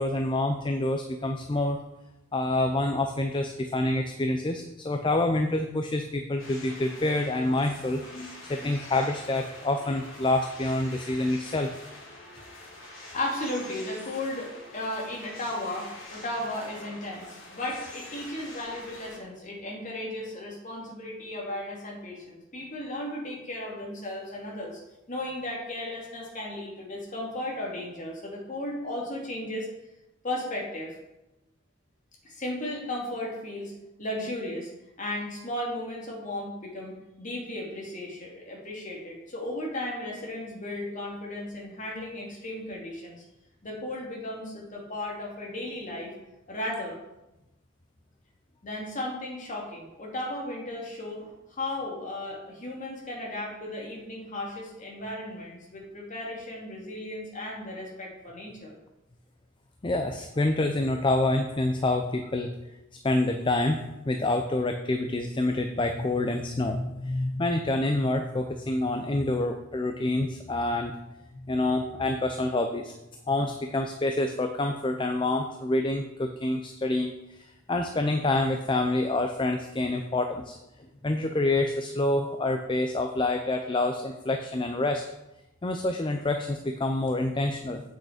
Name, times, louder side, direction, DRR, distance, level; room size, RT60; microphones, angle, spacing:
voice 1, 0.0-1.8 2.3-8.0 8.4-11.7 59.8-62.5 63.0-70.9 71.3-72.9 73.3-80.6 81.0-85.0 85.6-87.8, left 2 dB, 25° left, 5 dB, 0.5 m, -27 dB
sound 1, 6.4-19.2, left 2 dB, 75° left, 2.8 m, -45 dB
voice 2, 12.9-24.8 25.1-29.7 30.2-30.9 32.2-33.7 34.0-34.7 35.0-43.2 43.6-46.1 46.5-47.0 48.6-58.7, left 1 dB, 40° left, -3 dB, 2.4 m, -35 dB
8.7 x 6.4 x 5.1 m, 0.94 s
head